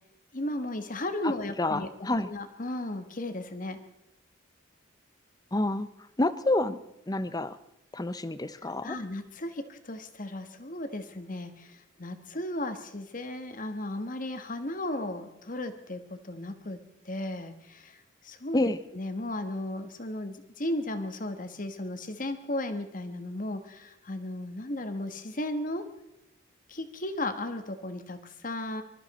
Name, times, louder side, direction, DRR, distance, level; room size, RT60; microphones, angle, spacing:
voice 1, 0.3-3.8 8.8-16.8 17.0-18.6 18.9-25.8 26.7-28.8, left 1 dB, 40° left, 8 dB, 1.5 m, -35 dB
voice 2, 1.6-2.3 5.5-5.9 6.2-7.6 7.9-9.0 18.5-18.8, left 2 dB, 20° left, 14 dB, 0.7 m, -28 dB
25.0 x 13.5 x 4.3 m, 0.89 s
head